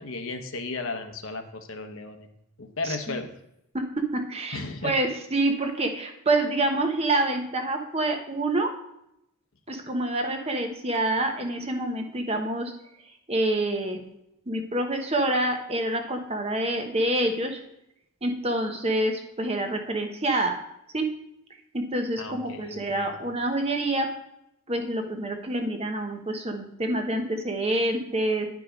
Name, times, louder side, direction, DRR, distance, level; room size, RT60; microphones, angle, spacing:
voice 1, 0.0-2.3 2.6-3.3 4.5-4.9 22.2-23.1, left 3 dB, 60° left, 6 dB, 1.0 m, -35 dB
voice 2, 4.1-8.7 9.7-12.7 13.3-14.0 14.5-17.6 18.2-20.6 20.9-21.1 21.7-24.1 24.7-28.5, right 1 dB, 25° right, 4 dB, 0.9 m, -27 dB
10.5 x 4.8 x 5.1 m, 0.80 s
head